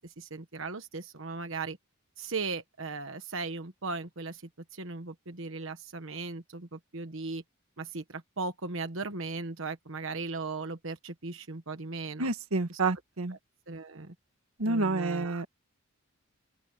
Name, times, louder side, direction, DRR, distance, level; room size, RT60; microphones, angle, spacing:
voice 1, 0.0-1.8 2.2-4.4 4.7-7.4 7.8-12.3 12.7-12.8 13.7-14.1 14.6-15.4, right 3 dB, 65° right, 1.3 m, -37 dB
voice 2, 12.2-13.4 14.6-15.5, right 3 dB, 85° right, 1.5 m, -29 dB
open air
head